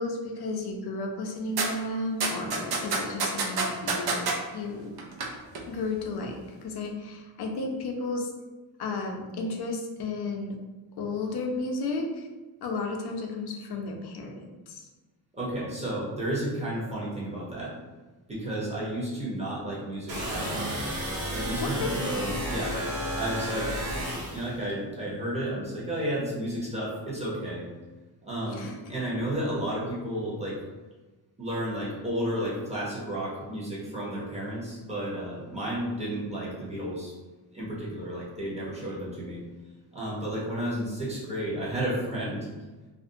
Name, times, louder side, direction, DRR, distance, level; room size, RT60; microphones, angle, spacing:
voice 1, 0.0-4.3 4.5-5.0 5.7-8.3 8.8-10.6 11.0-12.3 12.6-14.4 14.7-14.9 21.6-21.9 28.6-28.7, left 3 dB, 60° left, 2 dB, 0.5 m, -33 dB
sound 1, 1.6-1.7 2.2-4.3 5.0-5.3 5.5-5.6, right 4 dB, 55° right, 0.5 m, -27 dB
voice 2, 15.3-17.7 18.3-20.7 21.3-22.7 23.1-23.7 24.3-27.7 28.2-30.6 31.4-37.1 37.5-39.4 39.9-42.5, right 1 dB, 15° right, -7 dB, 0.7 m, -32 dB
sound 2, 20.1-24.5, equal, 75° right, 0.9 m, -32 dB
2.5 x 2.1 x 2.6 m, 1.2 s
wide cardioid pair, 140°, 45 cm